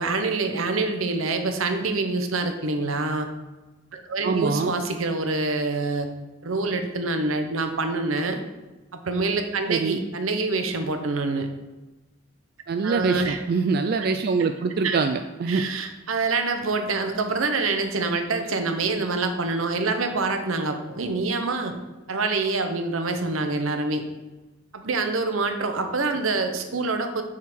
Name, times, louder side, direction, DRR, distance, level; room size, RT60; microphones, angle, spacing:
voice 1, 0.0-3.3 3.9-6.1 6.4-8.4 9.0-11.5 12.8-13.4 14.8-15.0 15.5-21.7 22.1-24.0 24.7-27.2, right 3 dB, 85° right, 6 dB, 0.9 m, -26 dB
voice 2, 4.2-4.7 9.7-10.0 12.7-15.6, right 4 dB, 50° right, 7 dB, 0.3 m, -24 dB
7.3 x 3.8 x 6.1 m, 1.1 s
head